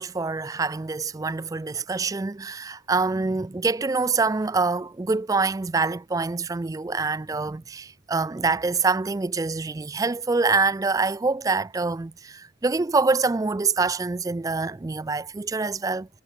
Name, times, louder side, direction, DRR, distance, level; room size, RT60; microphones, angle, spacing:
voice 1, 0.0-16.1, right 4 dB, 15° right, 0.3 m, -25 dB
head